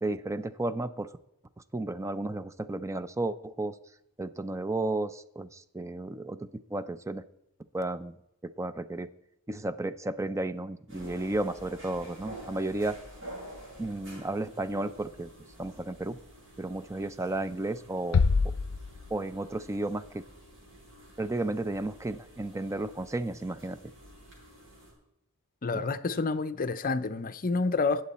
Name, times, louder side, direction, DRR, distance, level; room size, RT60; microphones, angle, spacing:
voice 1, 0.0-1.1 1.7-3.8 4.2-7.2 7.7-8.2 8.4-9.1 9.5-13.0 13.8-15.3 15.6-16.2 16.6-18.2 19.1-20.2 21.2-23.8 25.7-25.8, right 2 dB, 15° right, 0.4 m, -33 dB
sound 1, 10.9-24.9, right 1 dB, 60° right, 6.1 m, -49 dB
sound 2, 18.1-19.8, left 4 dB, 85° left, 0.5 m, -27 dB
voice 2, 25.6-28.0, left 3 dB, 40° left, 0.6 m, -29 dB
20.0 x 7.7 x 4.2 m
head